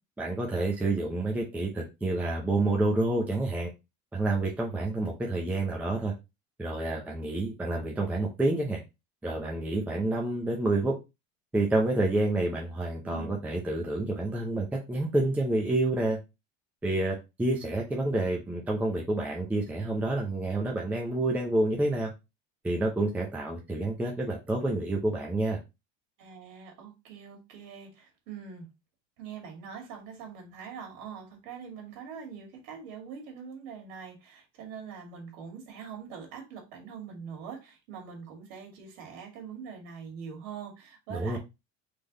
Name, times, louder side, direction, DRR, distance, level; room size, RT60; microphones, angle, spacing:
voice 1, 0.2-3.7 4.1-6.1 6.6-8.8 9.2-10.9 11.5-16.2 16.8-22.1 22.6-25.6 41.1-41.4, right 2 dB, 5° right, 0.6 m, -28 dB
voice 2, 13.0-13.4 26.2-28.7 29.2-41.4, right 6 dB, 75° right, 2.2 m, -43 dB
3.9 x 3.4 x 3.9 m
cardioid pair, 170°, 32 cm